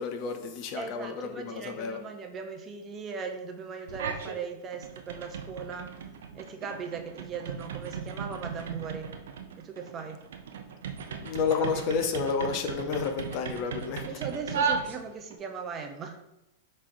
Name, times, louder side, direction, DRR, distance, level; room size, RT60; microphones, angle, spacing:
voice 1, 0.0-2.0 11.2-14.1, left 5 dB, 50° left, 6 dB, 0.6 m, -30 dB
voice 2, 0.8-5.9 6.3-9.1 9.6-10.2 14.0-16.2, right 5 dB, 30° right, 5 dB, 0.6 m, -38 dB
sound 1, 3.9-4.4 4.7-15.4, right 6 dB, 80° right, 0.5 m, -36 dB
5.6 x 3.1 x 2.6 m, 0.92 s
hypercardioid pair, 125°, 0 cm